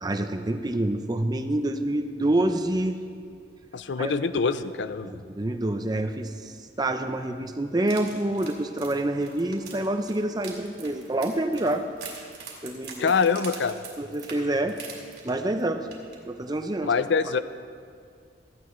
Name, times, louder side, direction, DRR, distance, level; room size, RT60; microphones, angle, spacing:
voice 1, 0.0-3.0 4.0-4.1 5.0-6.5 6.8-11.9 12.6-13.1 14.0-14.8 15.2-15.9 16.2-16.9, right 1 dB, 20° right, 7 dB, 0.6 m, -27 dB
voice 2, 3.7-5.1 13.0-13.8 16.8-17.4, left 5 dB, 65° left, 13 dB, 0.5 m, -24 dB
sound 1, 7.9-15.6 15.9-16.2 16.5-16.6, right 5 dB, 55° right, 2.8 m, -43 dB
17.5 x 14.0 x 3.2 m, 2.2 s
head